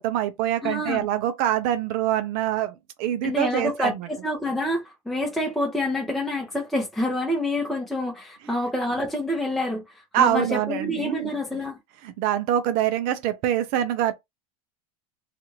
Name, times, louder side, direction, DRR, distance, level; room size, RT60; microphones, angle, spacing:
voice 1, 0.0-4.0 10.1-11.3 12.2-14.1, right 11 dB, 55° right, 0.6 m, -24 dB
voice 2, 0.6-1.1 3.2-11.8, left 1 dB, ahead, 0.8 m, -27 dB
2.6 x 2.5 x 2.9 m
hypercardioid pair, 105°, 18 cm